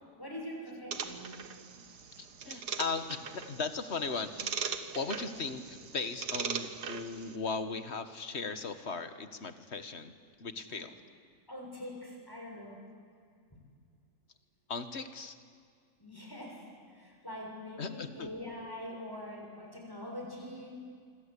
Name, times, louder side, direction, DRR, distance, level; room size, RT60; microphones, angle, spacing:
voice 1, 0.2-1.4 10.7-10.9 11.5-12.8 16.0-20.7, left 1 dB, 15° left, -1 dB, 6.9 m, -44 dB
sound 1, 0.9-7.4, right 6 dB, 85° right, 1.9 m, -40 dB
voice 2, 2.2-4.6 4.9-10.1 10.4-10.9 14.7-15.4 17.8-18.3, left 4 dB, 45° left, 10 dB, 1.7 m, -37 dB
26.5 x 25.0 x 8.4 m, 2.1 s
omnidirectional pair, 1.7 m